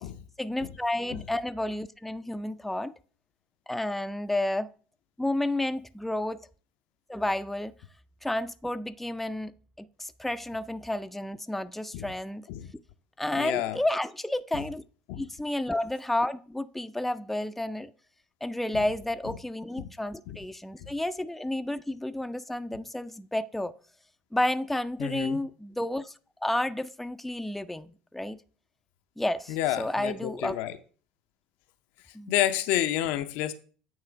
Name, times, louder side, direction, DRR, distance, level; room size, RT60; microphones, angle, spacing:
voice 1, 0.4-2.9 3.7-4.7 5.2-6.4 7.1-7.7 8.2-9.5 9.8-12.5 13.2-14.8 15.2-17.9 18.4-23.7 24.3-26.1 26.4-28.4 29.2-30.6 32.1-32.3, left 1 dB, 5° left, 0.4 m, -31 dB
voice 2, 13.3-13.8 15.1-15.2 19.8-19.9 20.3-20.4 25.0-25.4 29.5-30.7 32.3-33.5, left 13 dB, 65° left, 0.5 m, -29 dB
8.9 x 3.1 x 4.6 m
hypercardioid pair, 65°, 4 cm